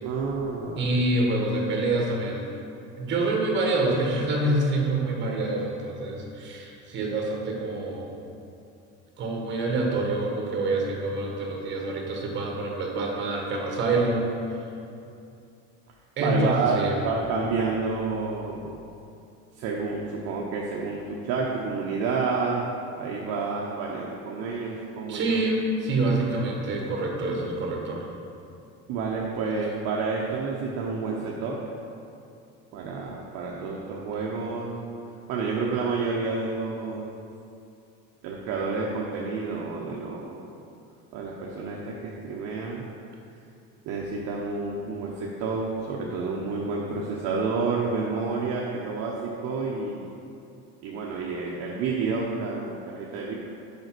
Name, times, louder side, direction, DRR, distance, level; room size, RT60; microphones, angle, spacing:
voice 1, 0.0-0.9 16.2-18.8 19.5-22.7 23.0-25.4 28.9-31.6 32.7-34.7 35.3-37.1 38.2-40.5 41.1-42.9 43.9-50.1 50.8-53.3, right 4 dB, 55° right, -2 dB, 0.8 m, -29 dB
voice 2, 0.8-2.5 3.0-8.1 9.2-14.6 16.2-16.9 25.1-28.1, right 2 dB, 40° right, -1 dB, 1.4 m, -26 dB
5.3 x 5.1 x 6.0 m, 2.6 s
cardioid pair, 150°, 30 cm